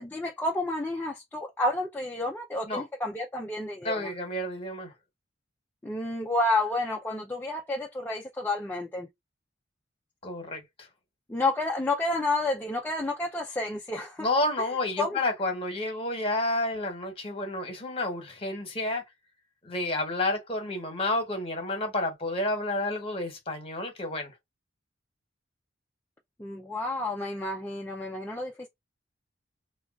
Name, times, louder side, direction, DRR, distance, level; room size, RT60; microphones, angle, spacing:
voice 1, 0.0-4.1 5.8-9.1 11.3-14.3 15.0-15.2 26.4-28.7, left 2 dB, 10° left, 0.4 m, -30 dB
voice 2, 3.8-4.9 10.2-10.9 14.2-19.0 19.6-24.3, left 2 dB, 30° left, 1.1 m, -30 dB
3.5 x 2.3 x 2.3 m
head